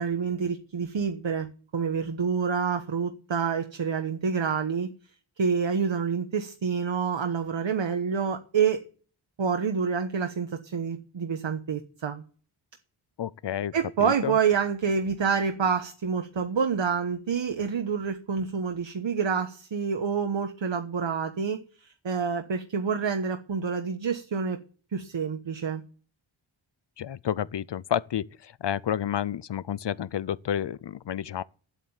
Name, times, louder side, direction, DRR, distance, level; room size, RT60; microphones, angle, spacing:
voice 1, 0.0-4.9 5.4-8.8 9.4-12.2 13.7-24.6 24.9-25.8, right 6 dB, 65° right, 1.2 m, -28 dB
voice 2, 13.2-13.7 14.0-14.4 27.0-31.4, left 10 dB, 60° left, 0.6 m, -30 dB
10.0 x 8.3 x 7.2 m
wide cardioid pair, 90°, 49 cm